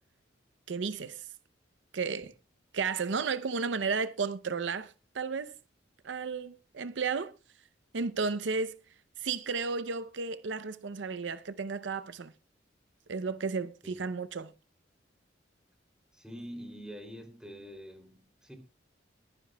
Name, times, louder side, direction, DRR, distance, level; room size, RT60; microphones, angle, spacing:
voice 1, 0.7-1.3 1.9-2.3 2.7-5.6 6.0-7.3 7.9-8.8 9.2-12.3 13.1-14.5, right 5 dB, 80° right, 0.6 m, -33 dB
voice 2, 16.1-18.6, equal, 5° right, 2.8 m, -45 dB
21.5 x 11.0 x 2.2 m
head